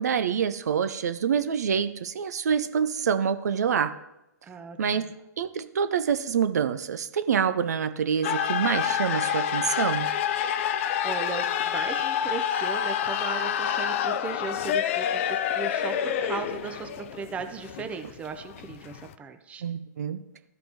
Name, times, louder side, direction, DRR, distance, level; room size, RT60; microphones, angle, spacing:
voice 1, 0.0-3.9 4.8-5.0 5.4-10.1 19.6-20.2, right 7 dB, 65° right, 10 dB, 0.5 m, -26 dB
voice 2, 4.4-5.1 11.0-19.6, right 5 dB, 15° right, 7 dB, 0.6 m, -37 dB
sound 1, 8.2-19.1, left 9 dB, 45° left, 0.4 m, -28 dB
14.0 x 5.1 x 2.9 m, 0.89 s
figure-of-eight pair, 115°, 10 cm